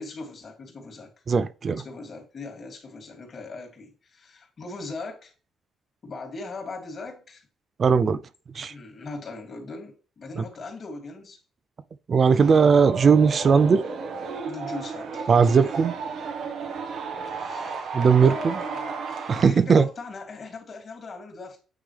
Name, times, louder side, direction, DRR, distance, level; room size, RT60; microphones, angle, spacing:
voice 1, 0.0-1.1 1.7-5.3 6.0-7.5 8.7-11.4 14.4-15.7 17.3-21.6, left 3 dB, 45° left, 2.7 m, -40 dB
voice 2, 1.3-1.8 7.8-8.2 8.6-8.7 12.1-13.8 15.3-15.9 17.9-18.6 19.3-19.9, right 5 dB, 45° right, 0.4 m, -18 dB
sound 1, 12.4-19.5, right 5 dB, 70° right, 1.2 m, -33 dB
8.9 x 3.7 x 3.3 m
cardioid pair, 90°, 0 cm